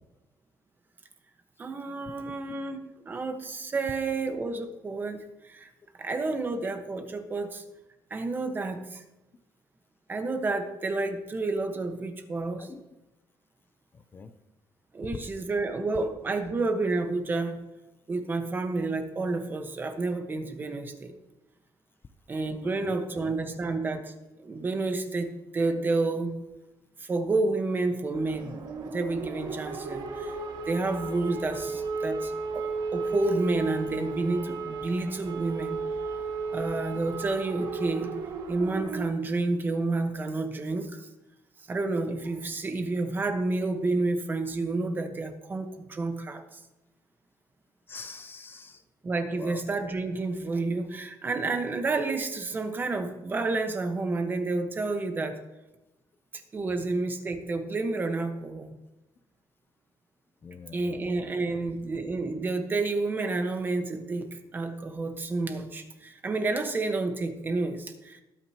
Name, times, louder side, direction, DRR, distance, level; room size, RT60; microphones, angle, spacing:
voice 1, 1.6-5.7 6.0-7.6 8.1-9.0 10.1-12.7 14.9-17.6 18.1-21.1 22.3-24.1 24.4-26.4 27.0-28.6 28.8-30.3 30.7-32.7 32.9-35.8 36.5-38.1 38.5-41.1 41.7-46.6 49.0-55.4 56.5-58.7 60.7-68.2, right 3 dB, 25° right, 6 dB, 1.3 m, -30 dB
voice 2, 22.8-23.3 47.9-48.8 49.4-49.6 56.7-56.8 60.4-61.0 61.5-61.6, left 5 dB, 25° left, 9 dB, 0.6 m, -44 dB
sound 1, 28.1-39.1, right 3 dB, 65° right, 2.0 m, -34 dB
19.5 x 9.1 x 3.0 m, 0.99 s
cardioid pair, 160°, 8 cm